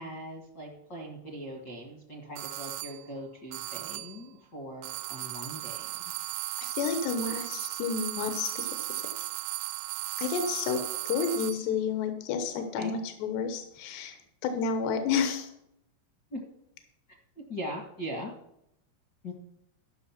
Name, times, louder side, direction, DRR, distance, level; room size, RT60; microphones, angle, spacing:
voice 1, 0.0-5.9 12.5-13.0 16.3-16.4 17.3-18.3 19.2-19.3, equal, 65° left, -1 dB, 1.0 m, -40 dB
sound 1, 2.4-3.1 3.5-4.3 4.8-11.7, right 17 dB, 80° right, 2.2 m, -36 dB
voice 2, 6.6-8.7 10.2-10.8 11.1-14.2 14.4-15.5, left 6 dB, 85° left, 7 dB, 3.1 m, -30 dB
13.5 x 6.1 x 5.8 m, 0.79 s
omnidirectional pair, 4.8 m